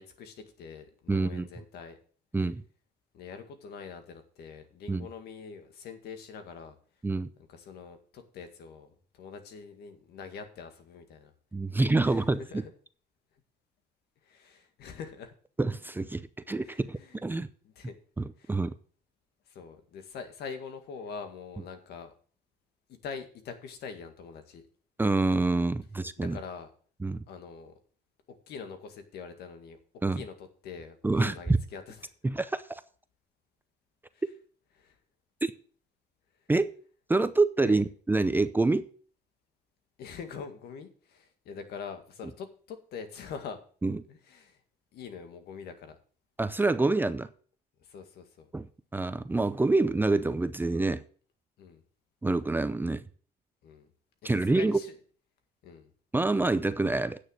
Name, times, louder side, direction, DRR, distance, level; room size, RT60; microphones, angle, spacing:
voice 1, 0.0-2.0 3.1-6.8 7.5-11.3 12.0-12.7 14.2-15.3 16.5-18.0 18.4-18.6 19.5-22.1 22.9-24.6 26.2-26.7 27.3-27.7 28.3-29.8 30.1-32.1 34.1-34.2 34.7-35.0 37.6-37.8 40.0-43.6 44.1-44.6 44.9-46.0 47.8-48.5 51.6-51.8 53.6-53.9 54.2-55.0 55.6-55.9, left 6 dB, 70° left, 2.0 m, -44 dB
voice 2, 1.1-1.5 2.3-2.6 4.9-5.1 7.0-7.3 11.5-12.6 15.6-17.5 18.2-18.7 25.0-26.4 27.0-27.2 30.0-30.2 31.0-31.3 32.2-32.8 35.4-35.5 36.5-36.7 37.1-38.8 43.8-44.0 46.4-47.3 48.5-48.7 48.9-51.0 52.2-53.1 54.2-54.8 56.1-57.2, right 3 dB, 10° right, 0.6 m, -27 dB
9.2 x 6.6 x 6.6 m
cardioid pair, 110°, 17 cm